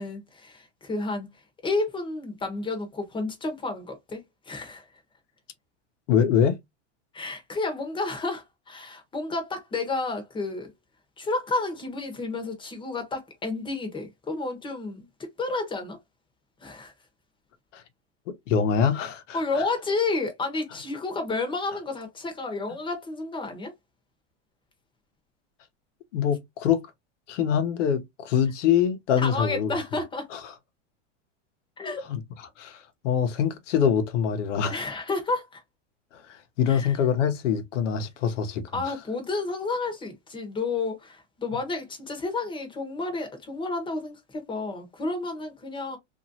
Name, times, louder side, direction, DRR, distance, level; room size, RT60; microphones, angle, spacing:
voice 1, 0.0-1.3 1.6-4.8 7.1-10.7 11.2-15.1 15.4-16.0 16.6-16.9 19.3-23.7 29.2-30.3 31.8-32.0 34.7-35.6 36.7-37.0 38.7-46.0, left 3 dB, 15° left, 0.8 m, -31 dB
voice 2, 6.1-6.6 17.7-17.8 18.3-19.6 26.1-26.8 27.3-29.7 30.3-30.4 32.1-32.2 32.6-34.8 36.1-36.2 36.6-38.6, left 8 dB, 80° left, 0.9 m, -24 dB
2.9 x 2.6 x 2.6 m
supercardioid pair, 155°, 36 cm